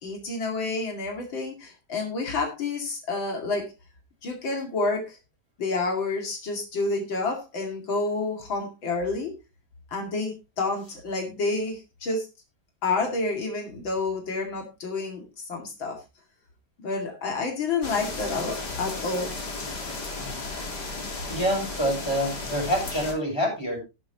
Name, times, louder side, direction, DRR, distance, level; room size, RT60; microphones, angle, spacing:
voice 1, 0.0-3.7 4.2-5.2 5.6-9.3 9.9-12.3 12.8-16.0 16.8-19.3, left 3 dB, 80° left, 1 dB, 3.2 m, -29 dB
sound 1, 17.8-23.1, left 3 dB, 55° left, 3.6 m, -34 dB
voice 2, 21.3-23.8, equal, 10° left, 0 dB, 6.4 m, -26 dB
13.5 x 11.0 x 2.9 m, 0.27 s
omnidirectional pair, 2.1 m